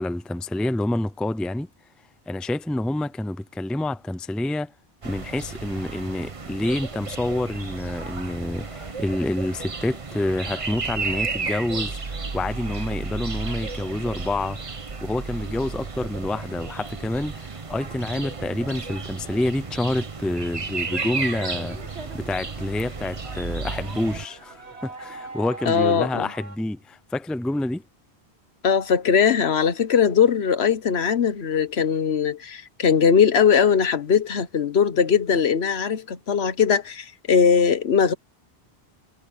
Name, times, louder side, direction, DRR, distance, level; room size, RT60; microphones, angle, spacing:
voice 1, 0.0-1.7 2.3-4.7 5.0-14.6 15.0-27.8, left 1 dB, ahead, 0.4 m, -28 dB
sound 1, 5.0-24.3, right 4 dB, 35° right, 1.0 m, -33 dB
sound 2, 20.2-26.6, right 3 dB, 90° right, 2.7 m, -41 dB
voice 2, 25.7-26.3 28.6-38.1, left 7 dB, 75° left, 1.3 m, -20 dB
omnidirectional pair, 1.1 m